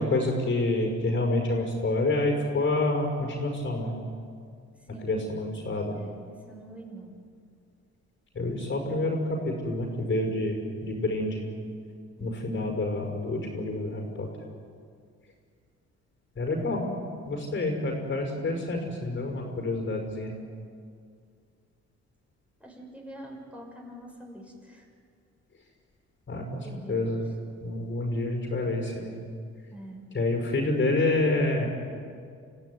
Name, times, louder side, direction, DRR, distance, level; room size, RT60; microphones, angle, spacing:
voice 1, 0.0-3.9 5.0-6.0 8.3-11.4 12.2-14.3 16.4-16.9 17.2-20.3 26.3-27.2 27.6-29.1 30.1-31.7, left 2 dB, 40° left, 2 dB, 5.6 m, -28 dB
voice 2, 4.8-5.1 5.9-7.1 12.2-12.5 22.6-24.9 26.6-27.2 29.7-30.0, right 1 dB, 5° right, -1 dB, 6.4 m, -45 dB
27.5 x 15.5 x 9.6 m, 2.2 s
cardioid pair, 90°, 30 cm